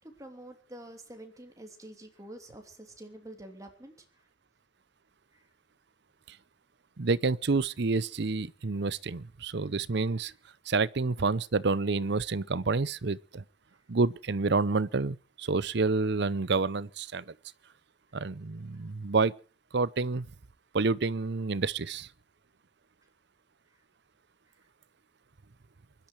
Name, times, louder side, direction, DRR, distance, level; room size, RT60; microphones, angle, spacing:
voice 1, 0.0-4.3 5.3-5.5 13.7-13.8 18.1-18.2 18.8-18.9 23.7-23.8 24.5-24.7, right 1 dB, 20° right, 3.0 m, -48 dB
voice 2, 7.0-10.3 10.7-13.4 13.9-17.3 18.1-19.3 19.7-20.3 20.7-22.1, right 3 dB, 60° right, 0.7 m, -28 dB
24.0 x 12.0 x 4.7 m
head